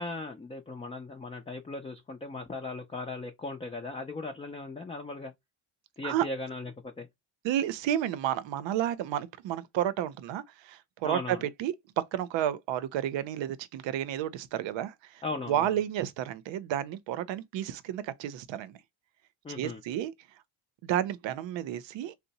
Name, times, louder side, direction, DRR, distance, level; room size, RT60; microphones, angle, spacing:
voice 1, 0.0-5.3 6.0-7.1 11.0-11.4 15.2-15.8 19.4-19.8, left 3 dB, 15° left, 0.4 m, -38 dB
voice 2, 7.4-18.8 19.6-20.1 20.8-22.1, right 11 dB, 65° right, 0.6 m, -31 dB
2.7 x 2.1 x 4.0 m
cardioid pair, 130°, 47 cm